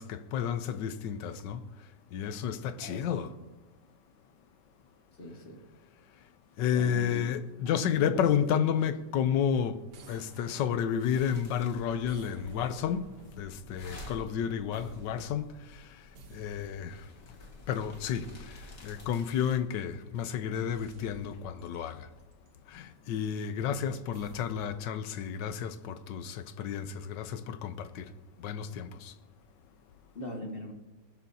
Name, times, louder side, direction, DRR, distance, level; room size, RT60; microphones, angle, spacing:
voice 1, 0.0-1.6 2.1-3.3 6.6-9.8 10.1-15.5 16.3-17.0 17.7-18.6 18.8-22.1 22.7-28.1 28.4-29.1, left 8 dB, 75° left, 1.3 m, -31 dB
voice 2, 2.8-3.3 5.2-5.6 6.7-7.2 7.7-8.5 30.1-30.7, equal, 30° left, 1.7 m, -41 dB
sound 1, 9.9-11.5 12.0-14.4 14.7-15.6 16.1-17.2 17.9-19.8 20.5-22.9 24.1-24.9, right 3 dB, 65° right, 1.6 m, -54 dB
sound 2, 11.0-19.6, left 1 dB, 55° left, 2.4 m, -51 dB
20.0 x 12.5 x 2.8 m
omnidirectional pair, 2.1 m